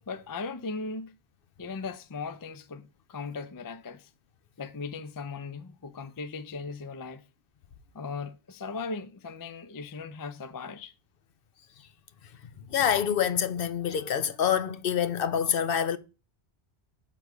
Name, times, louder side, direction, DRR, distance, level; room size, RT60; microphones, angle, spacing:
voice 1, 0.1-1.2 1.6-4.1 4.6-7.2 7.9-10.9, left 4 dB, 35° left, 0.3 m, -38 dB
voice 2, 12.7-16.0, left 8 dB, 65° left, 0.8 m, -26 dB
6.4 x 3.9 x 5.9 m
omnidirectional pair, 1.1 m